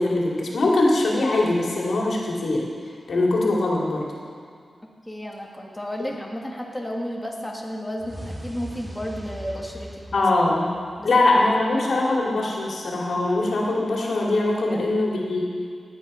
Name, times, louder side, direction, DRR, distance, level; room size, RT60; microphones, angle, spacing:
voice 1, 0.0-2.7 3.1-4.0 10.1-10.7 11.0-15.5, left 2 dB, 70° left, -2 dB, 2.7 m, -22 dB
voice 2, 5.1-10.2 11.0-11.1 11.8-12.1 14.7-14.8, equal, 10° left, -1 dB, 1.6 m, -33 dB
sound 1, 8.0-11.2, equal, 20° right, 2.3 m, -39 dB
17.0 x 9.4 x 5.6 m, 2.1 s
wide cardioid pair, 110°, 0 cm